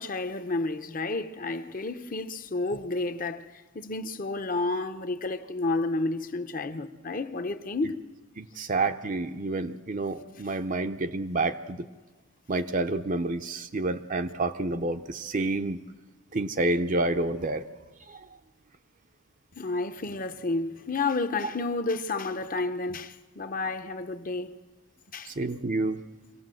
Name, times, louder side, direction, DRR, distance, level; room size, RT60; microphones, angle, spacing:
voice 1, 0.0-3.5 3.7-8.0 19.6-24.5 25.1-25.3, left 3 dB, 40° left, 0.9 m, -31 dB
voice 2, 8.4-11.9 12.5-15.8 16.3-17.6 18.1-18.2 25.3-26.0, right 2 dB, 35° right, 0.6 m, -29 dB
25.5 x 18.0 x 7.7 m
head